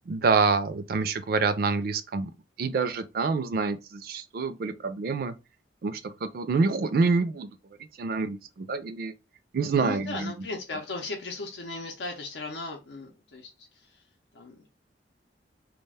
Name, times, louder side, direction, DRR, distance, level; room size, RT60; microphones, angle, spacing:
voice 1, 0.1-2.3 2.6-5.3 5.8-7.5 8.0-9.1 9.5-10.3, right 4 dB, 55° right, 0.4 m, -27 dB
voice 2, 9.8-14.0 14.3-14.7, left 3 dB, 80° left, 0.6 m, -37 dB
2.3 x 2.2 x 3.3 m
head